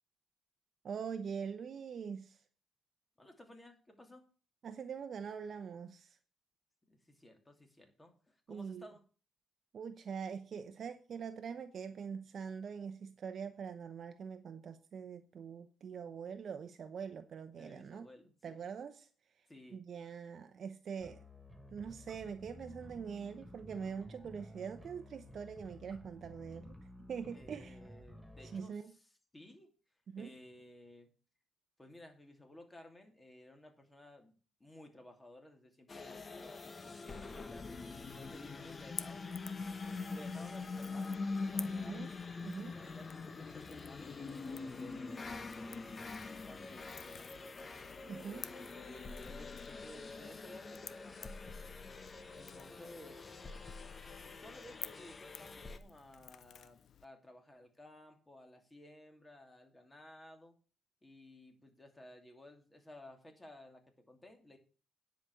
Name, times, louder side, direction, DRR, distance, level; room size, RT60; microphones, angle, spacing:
voice 1, 0.8-2.4 4.6-6.2 8.5-8.9 9.7-18.1 18.4-19.1 19.7-21.2 21.7-26.8 27.1-27.8 28.5-28.9 30.1-30.3 41.7-42.1 42.4-42.7 48.1-48.4, right 6 dB, 55° right, 0.8 m, -43 dB
voice 2, 3.2-4.2 6.9-9.0 17.6-18.6 19.5-19.8 27.3-29.7 30.2-31.1 31.8-39.3 40.1-42.1 42.5-44.2 44.5-46.1 46.4-47.5 48.2-51.4 52.3-53.5 54.3-60.6 61.0-64.6, left 1 dB, 15° left, 2.8 m, -56 dB
sound 1, 21.0-28.6, left 1 dB, ahead, 1.7 m, -53 dB
sound 2, 35.9-55.8, left 4 dB, 35° left, 1.1 m, -44 dB
Crackle / Crack, 38.7-57.1, left 9 dB, 65° left, 0.6 m, -53 dB
10.0 x 5.2 x 8.3 m
cardioid pair, 90°, 0 cm